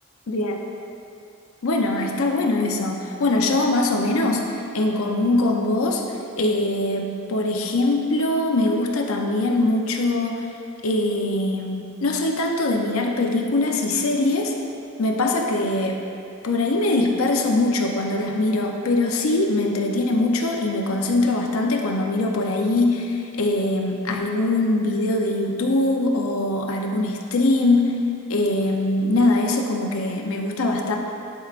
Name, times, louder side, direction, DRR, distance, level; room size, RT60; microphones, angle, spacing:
voice 1, 0.3-0.6 1.6-4.4 4.7-6.0 6.4-10.4 10.8-14.5 15.0-16.0 16.4-28.0 28.3-31.0, left 2 dB, 75° left, 1 dB, 0.6 m, -22 dB
10.5 x 4.7 x 2.4 m, 2.5 s
head